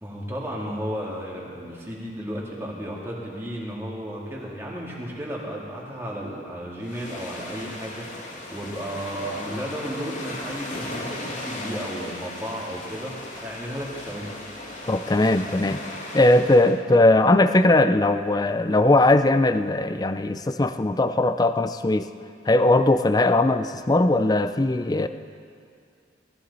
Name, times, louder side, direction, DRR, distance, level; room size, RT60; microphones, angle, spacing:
voice 1, 0.0-13.1 13.4-14.4, equal, 15° right, -4 dB, 2.2 m, -33 dB
sound 1, 6.8-16.8, left 1 dB, 40° left, 2.4 m, -37 dB
voice 2, 14.9-15.8 16.1-22.1 22.5-25.1, left 2 dB, 20° left, 11 dB, 0.4 m, -19 dB
19.0 x 14.5 x 4.1 m, 2.3 s
head